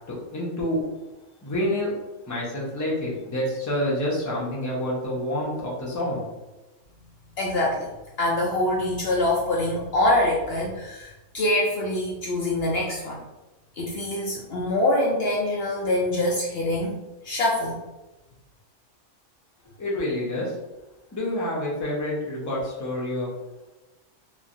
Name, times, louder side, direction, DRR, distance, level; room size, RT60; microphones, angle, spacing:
voice 1, 0.1-0.8 1.4-1.9 2.3-6.2 19.8-20.5 21.1-23.3, left 1 dB, 20° left, -5 dB, 0.6 m, -28 dB
voice 2, 7.4-7.9 8.2-13.2 13.8-17.0 17.2-17.8, left 1 dB, 65° left, -3 dB, 0.7 m, -24 dB
3.0 x 2.2 x 2.5 m, 1.1 s
omnidirectional pair, 1.3 m